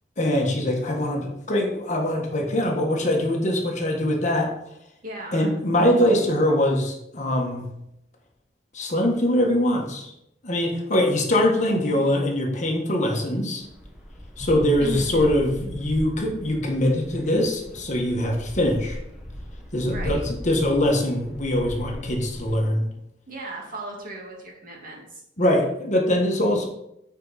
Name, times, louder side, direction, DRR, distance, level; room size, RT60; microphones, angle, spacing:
voice 1, 0.2-4.5 5.3-7.7 8.7-10.1 10.4-13.6 14.4-19.0 19.7-22.9 25.4-26.7, left 1 dB, 40° left, 0 dB, 1.5 m, -23 dB
voice 2, 5.0-5.5 11.9-12.1 14.8-15.2 19.9-20.2 23.3-25.2 26.2-26.4, right 1 dB, 50° right, -1 dB, 2.0 m, -36 dB
sound 1, 13.6-22.6, equal, 5° right, 1.3 m, -38 dB
9.0 x 4.8 x 4.1 m, 0.80 s
head